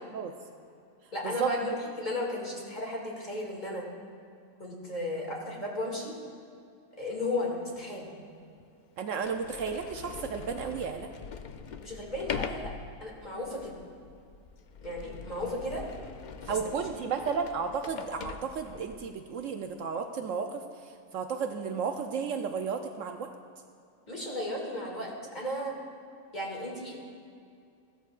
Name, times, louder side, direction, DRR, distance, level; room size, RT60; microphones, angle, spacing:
voice 1, 1.1-3.8 4.6-6.2 7.0-8.1 11.8-12.7 13.0-13.8 14.8-15.8 16.5-16.7 24.1-25.7 26.3-27.0, left 1 dB, 30° left, -3 dB, 2.3 m, -34 dB
Sliding door, 7.8-7.9 8.6-8.7 9.1-19.1, left 6 dB, 75° left, 0.4 m, -42 dB
voice 2, 9.0-11.1 16.5-23.3, right 6 dB, 70° right, 5 dB, 0.9 m, -33 dB
16.0 x 13.0 x 2.4 m, 2.5 s
omnidirectional pair, 1.5 m